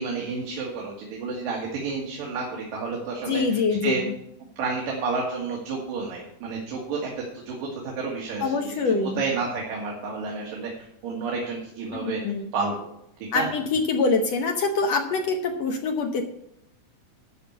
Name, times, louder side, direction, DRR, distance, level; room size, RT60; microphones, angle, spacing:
voice 1, 0.0-4.0 4.6-7.0 7.5-7.6 7.8-8.6 8.8-12.2 12.5-12.9 13.3-13.5, right 4 dB, 70° right, -2 dB, 3.4 m, -30 dB
voice 2, 3.3-4.0 8.4-9.2 11.9-12.5 13.3-16.2, left 4 dB, 75° left, 4 dB, 1.5 m, -24 dB
11.0 x 6.1 x 8.3 m, 0.76 s
omnidirectional pair, 4.2 m